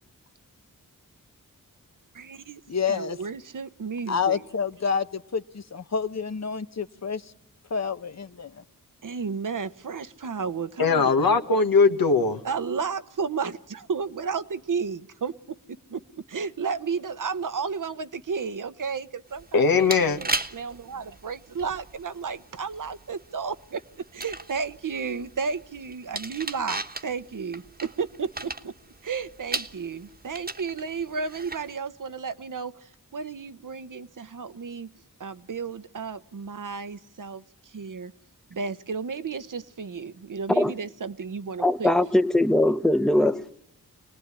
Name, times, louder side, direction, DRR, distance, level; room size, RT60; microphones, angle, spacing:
voice 1, 2.2-2.6 2.9-4.4 9.0-11.1 12.4-15.3 15.9-16.0 16.3-19.9 20.2-23.5 24.2-27.6 28.0-28.3 29.1-32.7 33.1-34.9 35.2-37.4 37.7-38.1 38.6-41.9, right 5 dB, 65° right, 1.0 m, -32 dB
voice 2, 2.7-3.2 4.1-7.2 7.7-8.6, left 6 dB, 50° left, 1.0 m, -28 dB
voice 3, 10.8-12.4 19.5-20.2, left 4 dB, 90° left, 1.6 m, -20 dB
sound 1, 19.3-31.7, right 2 dB, 25° right, 1.3 m, -38 dB
voice 4, 41.6-43.5, left 1 dB, ahead, 0.9 m, -21 dB
25.5 x 19.0 x 9.8 m
wide cardioid pair, 75°, 34 cm